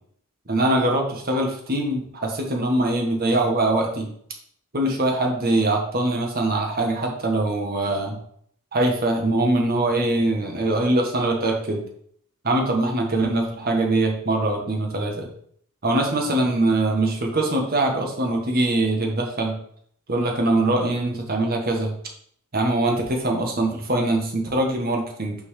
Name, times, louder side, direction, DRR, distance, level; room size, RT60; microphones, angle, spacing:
voice 1, 0.5-4.1 4.7-8.2 8.7-11.9 12.4-15.3 15.8-19.5 20.1-21.9 22.5-25.4, right 2 dB, 45° right, 1 dB, 1.7 m, -22 dB
6.2 x 4.6 x 6.5 m, 0.65 s
head